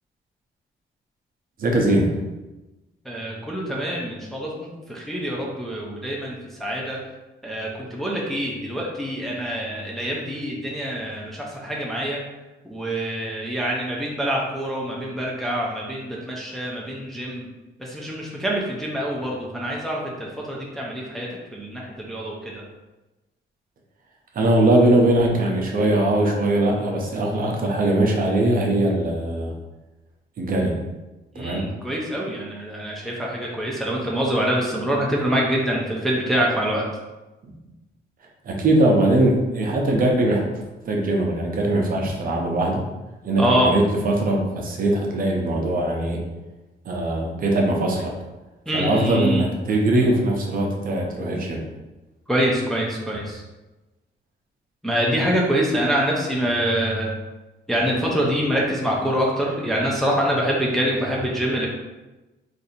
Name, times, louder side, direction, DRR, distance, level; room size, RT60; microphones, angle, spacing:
voice 1, 1.6-2.2 24.3-29.5 30.4-30.8 31.3-31.6 37.5-37.6 38.4-40.4 40.8-42.8 43.2-46.2 46.9-48.1 48.7-51.6 61.0-61.2, right 1 dB, 45° right, 0 dB, 0.6 m, -21 dB
voice 2, 3.0-7.0 7.4-12.2 12.6-17.5 17.8-22.6 31.3-36.8 43.4-43.7 48.7-49.5 52.3-53.4 54.8-57.2 57.7-61.7, equal, ahead, -3 dB, 0.4 m, -25 dB
2.6 x 2.5 x 4.1 m, 1.1 s
cardioid pair, 160°, 20 cm